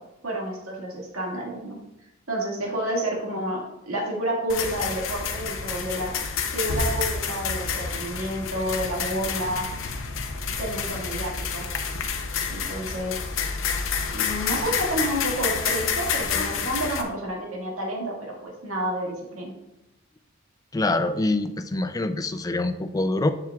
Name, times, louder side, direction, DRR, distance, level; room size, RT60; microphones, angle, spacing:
voice 1, 0.2-1.8 2.3-6.1 6.5-9.7 10.6-11.7 12.5-13.2 14.1-19.5, right 1 dB, 85° right, -2 dB, 1.9 m, -29 dB
sound 1, 4.5-17.0, left 6 dB, 65° left, 0.8 m, -29 dB
voice 2, 20.7-23.3, left 2 dB, 15° left, 10 dB, 0.3 m, -25 dB
7.7 x 7.1 x 2.4 m, 0.90 s
head